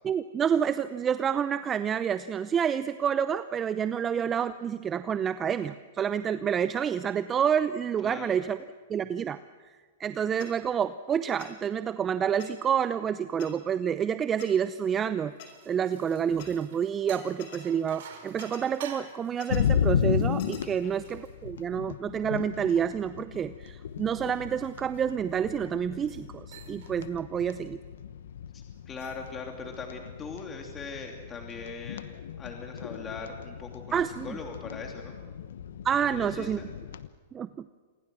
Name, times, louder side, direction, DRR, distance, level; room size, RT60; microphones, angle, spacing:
voice 1, 0.0-8.6 8.9-9.4 10.0-15.3 15.7-27.8 33.9-34.4 35.8-36.6 37.3-37.6, right 8 dB, 25° right, 13 dB, 0.6 m, -28 dB
voice 2, 8.0-8.4 20.6-21.0 28.5-35.2 36.1-36.7, left 4 dB, 20° left, 2 dB, 2.8 m, -41 dB
sound 1, 10.4-10.5 11.4-11.5 12.4-12.5 13.4-13.5 14.4-14.5 15.4-15.5 16.4-16.5 17.4-17.6 18.4-18.6 19.4-19.6 20.4-20.6, left 10 dB, 55° left, 5.6 m, -45 dB
sound 2, 15.2-22.0 22.4-25.4 25.9-26.3 26.5-27.0 27.3-27.6 28.7-29.3, right 7 dB, 65° right, 4.8 m, -51 dB
sound 3, 19.5-37.1, left 8 dB, 75° left, 1.1 m, -34 dB
27.5 x 21.5 x 6.3 m, 1.5 s
hypercardioid pair, 120°, 0 cm